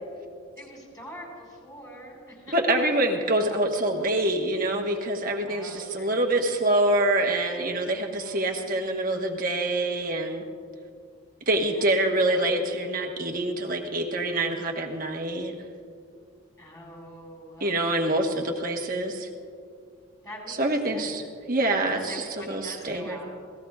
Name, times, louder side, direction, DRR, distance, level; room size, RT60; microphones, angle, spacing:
voice 1, 0.6-2.8 5.4-6.5 8.1-9.4 11.4-11.8 12.2-12.5 12.8-13.0 16.6-17.8 18.0-18.6 20.2-21.2 21.6-23.2, equal, 15° left, -3 dB, 4.7 m, -45 dB
voice 2, 2.5-10.4 11.5-15.5 17.6-19.3 20.5-21.2 21.5-23.2, right 1 dB, 40° right, 2 dB, 1.3 m, -26 dB
27.5 x 18.0 x 2.4 m, 2.3 s
head